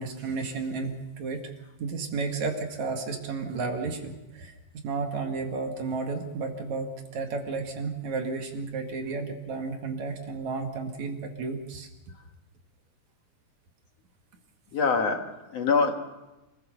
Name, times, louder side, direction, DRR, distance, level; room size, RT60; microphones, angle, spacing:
voice 1, 0.0-1.5 1.8-4.5 4.8-11.9, right 4 dB, 65° right, 4 dB, 3.2 m, -32 dB
voice 2, 14.7-15.9, left 4 dB, 60° left, 4 dB, 2.5 m, -24 dB
27.0 x 15.0 x 6.8 m, 1.0 s
omnidirectional pair, 3.6 m